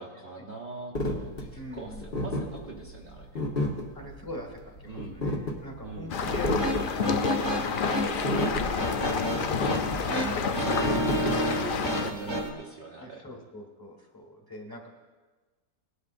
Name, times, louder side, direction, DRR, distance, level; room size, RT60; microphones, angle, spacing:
voice 1, 0.0-3.7 4.9-5.2 5.8-6.2 7.8-8.5 10.0-11.0 11.5-13.2, right 3 dB, 40° right, -3 dB, 1.1 m, -42 dB
sound 1, 0.9-11.9, left 1 dB, 40° left, 1.4 m, -32 dB
voice 2, 1.5-2.1 3.9-10.0 13.0-14.9, left 1 dB, 15° left, 2 dB, 1.6 m, -43 dB
sound 2, 6.1-12.1, left 6 dB, 70° left, 0.5 m, -30 dB
sound 3, 6.3-12.5, equal, 20° right, 1.2 m, -31 dB
18.5 x 11.5 x 2.6 m, 1.3 s
omnidirectional pair, 1.6 m